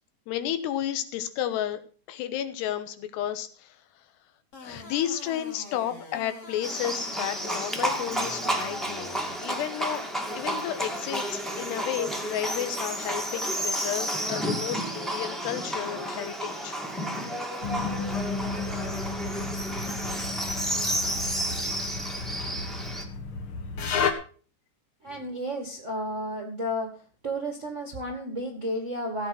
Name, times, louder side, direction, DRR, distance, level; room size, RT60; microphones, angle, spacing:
voice 1, 0.3-1.8 2.1-3.8 4.6-16.8, left 11 dB, 90° left, 10 dB, 3.3 m, -32 dB
sound 1, 4.5-9.3, left 3 dB, 40° left, 3.8 m, -45 dB
Livestock farm animals working animals, 6.6-23.0, right 1 dB, ahead, 0.7 m, -31 dB
sound 2, 17.6-24.1, left 4 dB, 65° left, 1.3 m, -32 dB
voice 2, 25.0-29.3, equal, 30° right, 2 dB, 1.3 m, -32 dB
16.0 x 8.3 x 6.0 m, 0.41 s
omnidirectional pair, 4.7 m